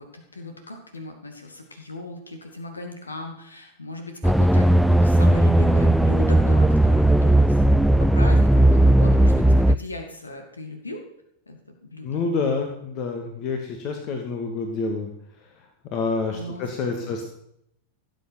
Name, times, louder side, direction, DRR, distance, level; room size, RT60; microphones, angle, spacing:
voice 1, 0.0-11.0 11.5-12.2 16.3-17.2, left 2 dB, 80° left, 5 dB, 2.3 m, -37 dB
sound 1, 4.2-9.8, right 1 dB, ahead, 0.4 m, -17 dB
voice 2, 12.0-15.1 15.9-17.2, left 4 dB, 40° left, 4 dB, 2.0 m, -27 dB
17.5 x 8.1 x 6.1 m, 0.75 s
figure-of-eight pair, 90°, 0 cm